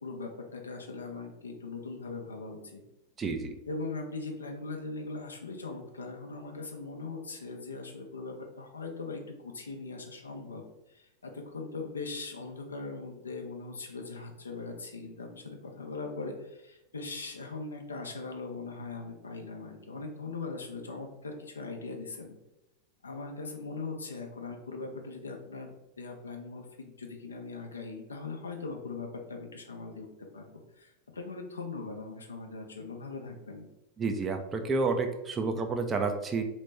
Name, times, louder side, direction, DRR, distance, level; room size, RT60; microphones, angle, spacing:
voice 1, 0.0-2.8 3.7-22.4 23.0-30.1 30.3-33.7, left 3 dB, 75° left, 3 dB, 0.7 m, -40 dB
voice 2, 3.2-3.5 34.0-36.4, right 4 dB, 20° right, 5 dB, 0.6 m, -30 dB
4.1 x 3.2 x 3.2 m, 0.93 s
figure-of-eight pair, 90°, 0 cm